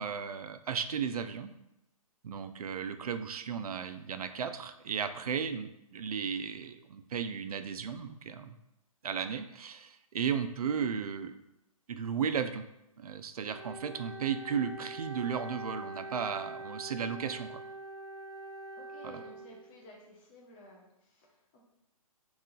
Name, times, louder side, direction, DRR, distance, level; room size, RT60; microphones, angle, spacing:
voice 1, 0.0-1.5 2.2-8.5 9.0-11.3 11.9-12.7 13.0-17.6 19.0-19.2, right 7 dB, 80° right, 10 dB, 0.4 m, -35 dB
Wind instrument woodwind instrument, 13.4-19.8, right 1 dB, 45° right, 0.7 m, -44 dB
voice 2, 18.7-21.6, left 1 dB, 15° left, -1 dB, 0.5 m, -54 dB
3.7 x 3.0 x 3.8 m, 0.88 s
hypercardioid pair, 160°, 19 cm